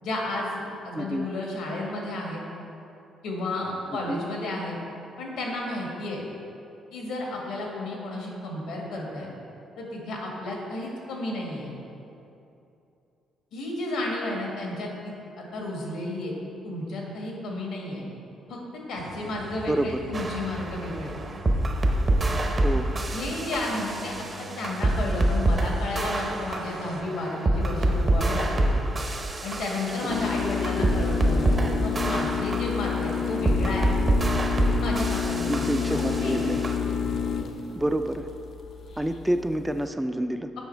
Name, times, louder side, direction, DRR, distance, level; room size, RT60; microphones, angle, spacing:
voice 1, 0.0-2.4 3.2-4.8 5.2-6.3 6.9-9.3 9.8-11.7 13.5-16.3 16.6-18.0 18.5-18.6 18.9-21.2 23.1-28.7 29.4-33.9 34.6-36.6, left 2 dB, 90° left, -1 dB, 1.6 m, -32 dB
voice 2, 0.9-1.3 4.1-4.2 19.7-20.0 22.6-22.9 30.3-30.4 35.4-36.6 37.8-38.3 39.0-40.6, right 1 dB, 10° right, 8 dB, 0.3 m, -28 dB
sound 1, 18.9-27.0, right 3 dB, 75° right, 0.8 m, -43 dB
sound 2, 20.1-36.8, right 1 dB, 30° right, 0.7 m, -26 dB
sound 3, 30.1-39.8, left 6 dB, 60° left, 0.5 m, -29 dB
7.2 x 5.3 x 4.5 m, 2.8 s
cardioid pair, 90°, 0 cm